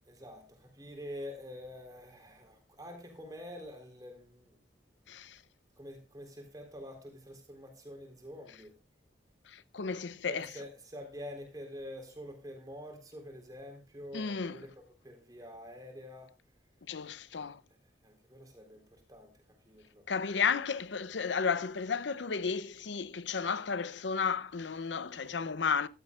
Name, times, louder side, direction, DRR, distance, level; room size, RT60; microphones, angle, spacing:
voice 1, 0.1-4.6 5.8-8.8 10.2-14.7 15.0-16.3 18.0-20.1, left 1 dB, 20° right, 3.8 m, -47 dB
voice 2, 9.5-10.5 14.1-14.6 16.9-17.6 20.1-25.9, left 5 dB, 80° left, 0.7 m, -33 dB
15.0 x 12.5 x 2.4 m
head